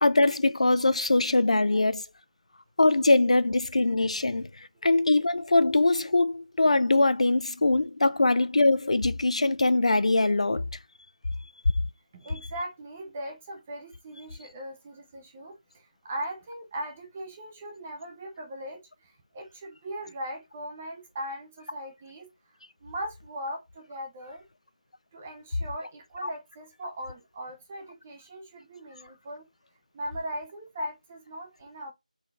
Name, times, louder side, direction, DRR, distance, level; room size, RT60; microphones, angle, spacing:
voice 1, 0.0-2.0 2.8-10.6 26.2-26.3 30.8-30.9, left 2 dB, 55° left, 0.3 m, -22 dB
voice 2, 12.1-22.3 22.8-24.4 25.1-29.5 29.9-31.9, right 1 dB, 10° right, 0.4 m, -39 dB
4.8 x 3.9 x 2.2 m
figure-of-eight pair, 175°, 4 cm